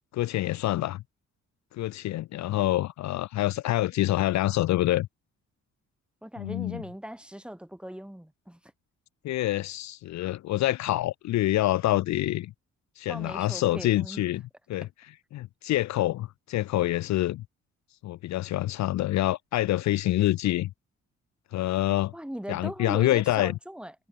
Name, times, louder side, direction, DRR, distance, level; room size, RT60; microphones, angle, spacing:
voice 1, 0.1-1.0 1.7-5.1 6.4-6.8 9.2-12.5 13.0-14.4 14.7-17.4 18.0-20.7 21.5-22.1 22.5-23.6, left 15 dB, 65° left, 0.5 m, -26 dB
voice 2, 6.2-8.6 13.1-14.2 22.1-23.9, equal, 5° right, 4.6 m, -39 dB
cardioid pair, 90°, 30 cm